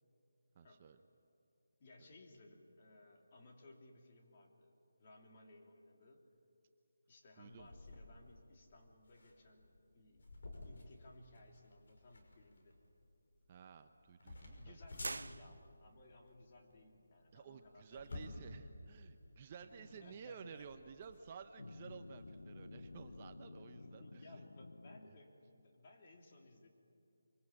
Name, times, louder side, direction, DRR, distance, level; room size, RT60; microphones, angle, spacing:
voice 1, 0.6-1.0 7.4-7.7 13.5-14.8 17.3-24.4, right 6 dB, 25° right, 8 dB, 0.7 m, -54 dB
voice 2, 1.8-6.3 7.1-10.3 10.6-12.8 14.5-18.5 19.6-20.8 23.0-23.1 23.7-26.7, left 2 dB, 35° left, 1 dB, 3.1 m, -61 dB
sound 1, 7.5-23.2, left 2 dB, 55° left, 5.9 m, -55 dB
sound 2, 15.0-16.1, right 3 dB, 75° right, 0.6 m, -45 dB
sound 3, 19.8-20.7 21.6-25.1, left 2 dB, 85° left, 0.7 m, -53 dB
24.5 x 24.0 x 8.8 m, 2.5 s
figure-of-eight pair, 170°, 0 cm